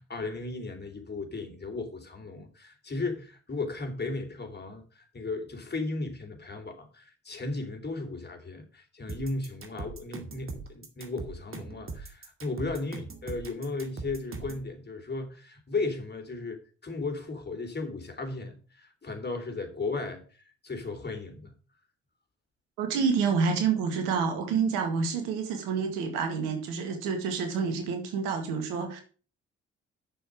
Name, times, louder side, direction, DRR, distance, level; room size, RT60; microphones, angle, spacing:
voice 1, 0.0-20.2 20.6-21.5, left 3 dB, 30° left, 3.4 m, -35 dB
sound 1, 9.1-14.7, right 4 dB, 40° right, 2.3 m, -40 dB
voice 2, 22.8-29.0, right 5 dB, 80° right, 2.1 m, -28 dB
8.9 x 6.9 x 6.2 m
hypercardioid pair, 45°, 32 cm